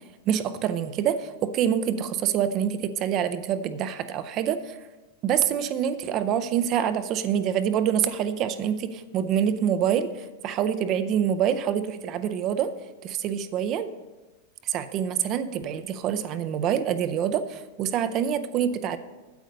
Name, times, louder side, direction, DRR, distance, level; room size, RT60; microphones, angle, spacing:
voice 1, 0.3-4.8 5.2-12.7 13.0-13.9 14.6-19.0, right 9 dB, 30° right, 11 dB, 0.5 m, -26 dB
9.2 x 8.0 x 5.2 m, 1.2 s
supercardioid pair, 165°, 0 cm